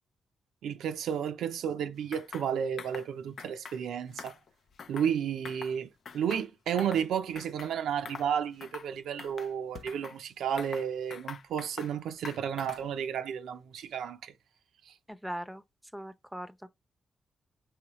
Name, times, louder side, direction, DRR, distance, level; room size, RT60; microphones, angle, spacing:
voice 1, 0.6-4.3 4.9-5.9 6.1-14.3, right 8 dB, 90° right, 0.4 m, -32 dB
sound 1, 2.1-2.5 2.8-3.1 3.4-3.8 4.1-5.1 5.4-5.8 6.1-7.1 7.3-7.7 8.0-8.3 8.6-8.9 9.2-10.2 10.6-11.9 12.2-12.9, left 6 dB, 70° left, 0.4 m, -45 dB
voice 2, 15.1-15.6 15.9-16.7, equal, 5° right, 0.6 m, -40 dB
4.8 x 3.0 x 3.0 m
cardioid pair, 60°, 0 cm